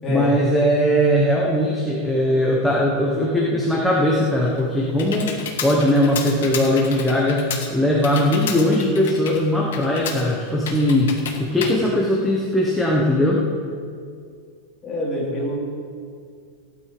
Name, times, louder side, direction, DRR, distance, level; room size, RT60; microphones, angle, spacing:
voice 1, 0.1-5.3 5.6-11.1 11.4-13.4, left 1 dB, ahead, -4 dB, 1.2 m, -19 dB
Computer keyboard, 4.2-12.8, left 6 dB, 90° left, 2.2 m, -33 dB
voice 2, 14.8-15.6, left 1 dB, 15° left, -6 dB, 3.9 m, -25 dB
16.0 x 10.5 x 5.0 m, 2.2 s
supercardioid pair, 175°, 0 cm